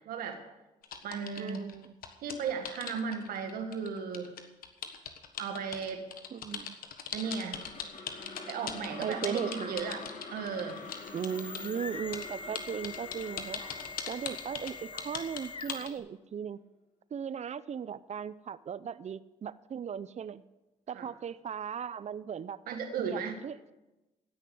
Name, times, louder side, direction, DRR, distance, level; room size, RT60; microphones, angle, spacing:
voice 1, 0.1-0.4 1.0-1.7 2.2-4.3 5.4-6.1 7.1-7.7 8.5-10.0 10.3-10.8 20.9-21.1 22.7-23.4, right 6 dB, 80° right, 6 dB, 1.8 m, -35 dB
sound 1, 0.8-11.7 12.1-16.0, left 8 dB, 75° left, 1.3 m, -40 dB
voice 2, 1.4-1.9 6.3-6.8 9.0-9.9 11.1-13.6 14.1-16.6 17.1-20.4 20.9-22.6 23.0-23.7, right 7 dB, 50° right, 17 dB, 0.6 m, -37 dB
sound 2, 7.2-15.4, left 4 dB, 55° left, 3.3 m, -47 dB
sound 3, 10.7-16.0, left 4 dB, 35° left, 0.9 m, -44 dB
16.5 x 6.6 x 7.8 m, 1.0 s
supercardioid pair, 60°, 15 cm